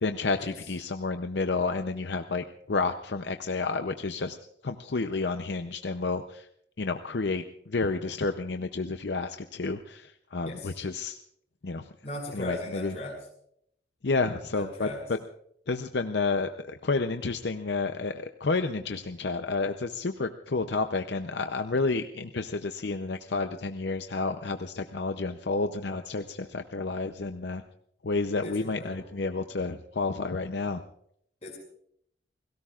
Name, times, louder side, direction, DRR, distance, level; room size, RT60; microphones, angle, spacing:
voice 1, 0.0-4.4 4.6-6.4 6.8-11.2 11.6-11.8 12.3-12.9 14.0-14.9 15.7-27.6 28.0-30.8, left 3 dB, 65° left, 7 dB, 0.7 m, -30 dB
voice 2, 10.4-10.8 12.0-13.2 14.5-15.0 28.4-29.1 31.4-31.6, left 1 dB, 35° left, -1 dB, 6.1 m, -38 dB
30.0 x 17.5 x 2.5 m, 0.71 s
head